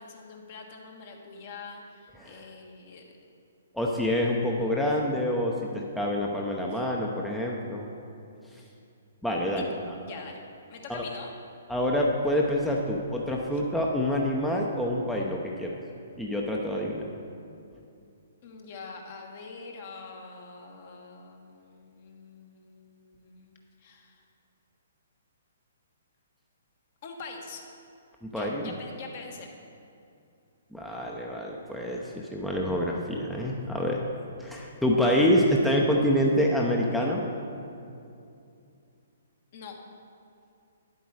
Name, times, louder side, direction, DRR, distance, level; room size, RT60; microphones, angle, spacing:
voice 1, 0.0-3.0 6.7-6.8 9.5-9.6 10.0-10.4 10.7-11.3 18.4-23.5 23.8-24.2 27.0-27.7 28.3-29.5 39.5-39.8, left 4 dB, 45° left, 1 dB, 1.4 m, -44 dB
voice 2, 3.7-7.9 9.2-10.0 10.9-11.0 11.7-15.7 16.2-17.1 28.2-28.7 30.7-34.1 34.4-37.2, equal, 5° left, -2 dB, 0.8 m, -27 dB
10.0 x 8.1 x 4.8 m, 2.6 s
figure-of-eight pair, 125°, 0 cm